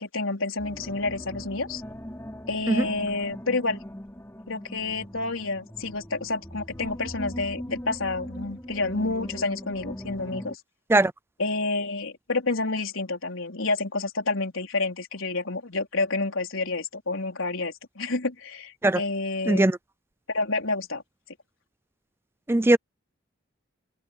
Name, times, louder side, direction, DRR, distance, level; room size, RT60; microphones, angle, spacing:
voice 1, 0.0-1.8 2.5-3.8 4.5-10.6 11.4-19.7 20.3-21.0, left 3 dB, 85° left, 4.3 m, -29 dB
sound 1, 0.6-10.6, equal, 15° left, 5.4 m, -40 dB
voice 2, 19.5-19.8 22.5-22.8, right 2 dB, 10° right, 0.4 m, -19 dB
head